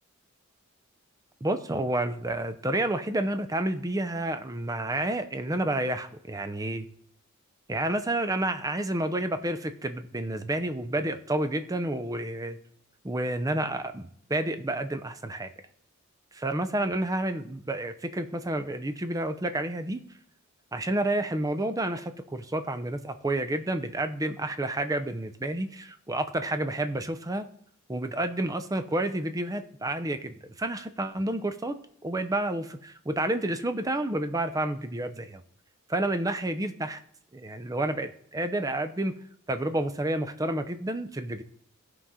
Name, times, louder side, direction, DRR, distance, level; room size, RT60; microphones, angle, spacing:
voice 1, 1.4-6.9 7.7-12.6 13.0-15.5 16.3-20.0 20.7-27.5 27.9-31.8 32.0-35.4 35.9-37.0 37.3-39.2 39.5-41.4, right 1 dB, 15° right, 10 dB, 0.6 m, -30 dB
16.0 x 5.6 x 3.7 m, 0.64 s
head